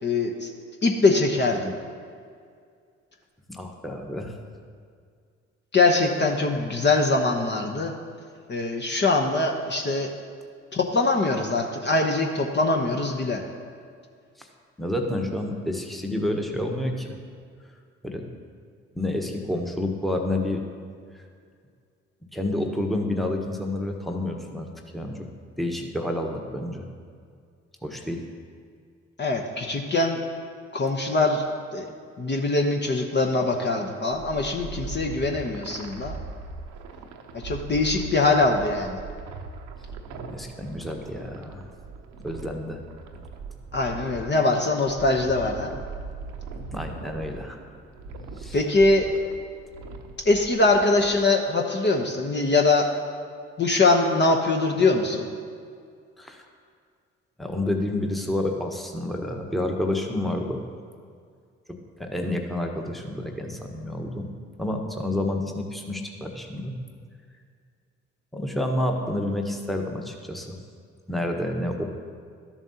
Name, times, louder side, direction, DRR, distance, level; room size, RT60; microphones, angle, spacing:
voice 1, 0.0-0.5 0.8-1.7 5.7-7.9 8.5-10.1 10.7-13.4 29.2-30.2 30.7-31.4 31.7-31.9 32.2-36.2 37.3-39.0 43.7-45.7 48.5-49.1 50.2-52.9 53.6-55.3, left 3 dB, 35° left, 2 dB, 0.9 m, -22 dB
voice 2, 3.5-4.4 14.4-14.5 14.8-17.1 18.0-18.2 18.9-20.6 22.3-24.7 24.9-25.2 25.6-26.9 27.8-28.2 40.3-41.7 42.2-42.8 46.7-47.6 48.4-48.6 56.2-56.4 57.4-60.6 62.0-64.3 64.6-66.8 68.3-70.5 71.1-71.9, left 1 dB, ahead, 2 dB, 1.1 m, -29 dB
sound 1, 34.1-51.2, right 4 dB, 65° right, 0.8 m, -40 dB
12.5 x 7.1 x 2.8 m, 2.2 s
hypercardioid pair, 45°, 33 cm